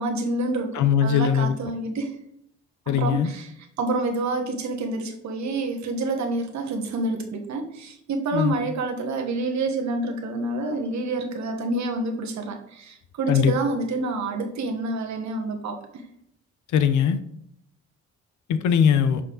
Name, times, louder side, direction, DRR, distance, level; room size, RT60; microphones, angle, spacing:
voice 1, 0.0-2.1 2.9-15.8, right 2 dB, 65° right, 3 dB, 1.4 m, -28 dB
voice 2, 0.7-1.6 2.9-3.3 8.3-8.5 13.3-13.6 16.7-17.2 18.5-19.2, left 8 dB, 75° left, 11 dB, 0.7 m, -20 dB
6.5 x 5.5 x 3.9 m, 0.72 s
cardioid pair, 90°, 30 cm